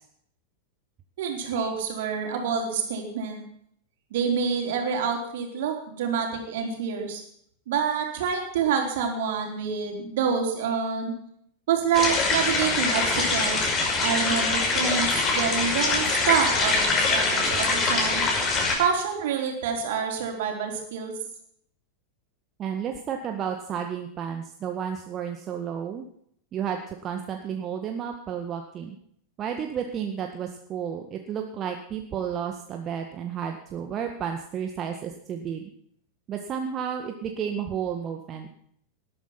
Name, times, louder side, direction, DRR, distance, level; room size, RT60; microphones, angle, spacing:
voice 1, 1.2-3.4 4.1-7.2 7.7-11.1 11.7-13.7 14.0-18.2 18.8-21.1, right 6 dB, 55° right, 2 dB, 4.3 m, -27 dB
sound 1, 11.9-18.8, left 3 dB, 30° left, 5.6 m, -24 dB
voice 2, 22.6-26.0 26.5-29.0 29.4-35.7 36.3-38.5, right 8 dB, 30° right, 4 dB, 1.7 m, -32 dB
19.5 x 12.0 x 6.0 m, 0.68 s
figure-of-eight pair, 90°, 0 cm